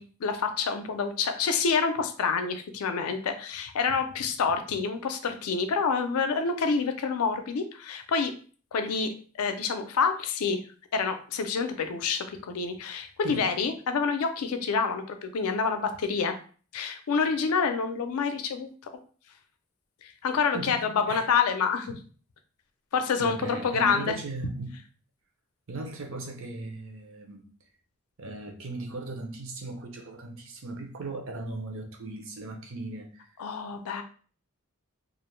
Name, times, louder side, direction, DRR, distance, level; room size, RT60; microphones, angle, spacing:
voice 1, 0.0-8.3 8.7-10.6 10.9-16.4 16.7-18.7 20.0-22.0 22.9-24.2 33.4-34.0, left 5 dB, 85° left, 0.4 m, -27 dB
voice 2, 13.2-13.6 20.5-21.3 23.2-24.7 25.7-27.4 28.2-33.3, right 2 dB, 65° right, 0.6 m, -38 dB
2.4 x 2.1 x 3.1 m
head